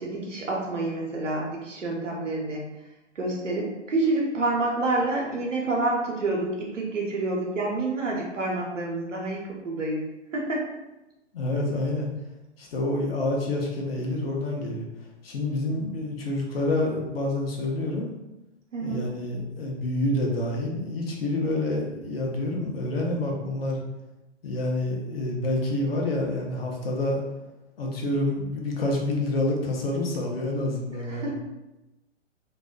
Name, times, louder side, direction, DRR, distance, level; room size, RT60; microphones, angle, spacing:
voice 1, 0.0-2.6 3.2-10.0 10.3-10.6 18.7-19.0 31.1-31.3, right 2 dB, 80° right, -2 dB, 0.8 m, -28 dB
voice 2, 11.3-12.1 12.6-14.8 15.2-18.1 18.8-23.8 24.4-27.2 27.8-31.3, left 1 dB, 50° left, -1 dB, 0.6 m, -28 dB
2.5 x 2.1 x 2.4 m, 0.99 s
figure-of-eight pair, 120°, 37 cm